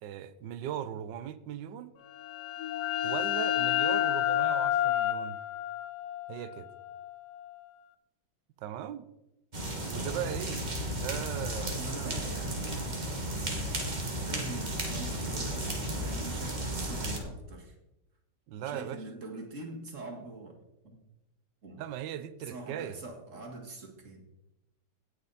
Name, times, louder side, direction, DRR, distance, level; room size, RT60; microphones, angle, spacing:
voice 1, 0.0-1.9 3.0-5.4 6.3-6.7 8.6-9.0 9.9-10.7 11.0-12.2 18.5-19.0 21.8-23.0, right 10 dB, 80° right, 13 dB, 1.3 m, -38 dB
sound 1, 2.1-7.6, left 12 dB, 75° left, 1.2 m, -30 dB
sound 2, 9.5-17.2, right 1 dB, 25° right, 1.5 m, -34 dB
voice 2, 11.7-13.1 13.8-13.9 14.3-15.7 16.0-17.8 18.6-20.5 20.8-21.0 21.6-21.8 22.4-24.2, right 3 dB, 45° right, 1 dB, 2.2 m, -44 dB
17.0 x 6.5 x 4.1 m, 0.93 s
omnidirectional pair, 1.9 m